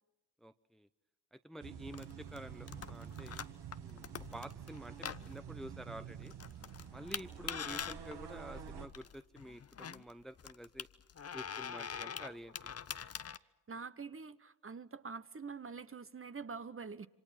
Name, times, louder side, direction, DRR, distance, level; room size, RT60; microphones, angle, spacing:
voice 1, 0.4-0.9 1.3-3.4 3.8-6.3 6.9-10.9 11.3-12.7, equal, ahead, 0.8 m, -49 dB
sound 1, 1.6-8.9, right 8 dB, 65° right, 2.0 m, -48 dB
sound 2, 1.9-13.4, left 7 dB, 35° left, 0.8 m, -45 dB
voice 2, 13.7-17.1, right 5 dB, 30° right, 1.1 m, -45 dB
28.0 x 25.0 x 5.9 m
supercardioid pair, 50°, 42 cm